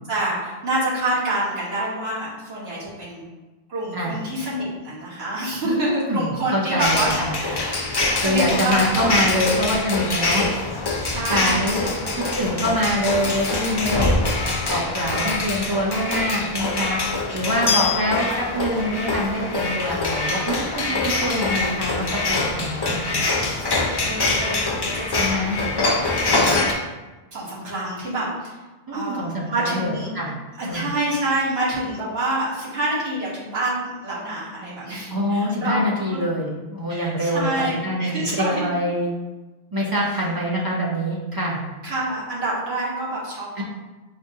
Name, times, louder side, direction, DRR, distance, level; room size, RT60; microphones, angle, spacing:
voice 1, 0.1-3.3 3.7-7.1 7.4-9.2 11.0-12.2 17.8-18.4 23.8-25.7 26.0-26.5 27.3-28.6 28.9-30.2 30.6-35.8 36.1-36.2 36.9-38.7 41.8-43.6, right 1 dB, 75° right, -7 dB, 1.5 m, -27 dB
voice 2, 5.6-7.4 8.2-10.5 11.3-11.9 12.1-14.2 14.7-17.0 17.3-23.2 25.2-25.6 28.9-30.4 30.6-30.9 35.1-39.1 39.7-41.6 43.6-43.7, equal, 25° right, -5 dB, 0.5 m, -25 dB
sound 1, 6.8-26.7, left 3 dB, 40° left, 0.3 m, -24 dB
5.0 x 2.7 x 2.7 m, 1.2 s
omnidirectional pair, 1.1 m